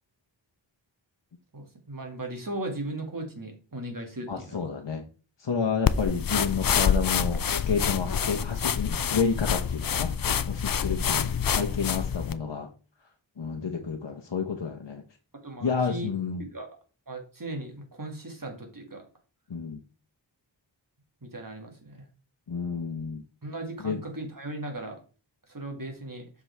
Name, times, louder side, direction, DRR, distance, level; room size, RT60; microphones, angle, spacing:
voice 1, 1.5-4.7 10.8-11.0 15.4-16.1 16.4-16.7 17.1-19.0 21.2-22.1 23.4-25.0 25.5-26.3, right 1 dB, 45° right, 3 dB, 2.1 m, -37 dB
voice 2, 4.3-5.0 5.4-10.1 10.5-12.7 13.4-15.0 15.6-16.4 19.5-19.8 22.5-23.2 23.8-24.0, left 5 dB, 65° left, 2 dB, 1.0 m, -30 dB
sound 1, 5.9-12.4, left 7 dB, 50° left, 0.5 m, -27 dB
7.4 x 6.0 x 3.3 m, 0.36 s
wide cardioid pair, 55°, 47 cm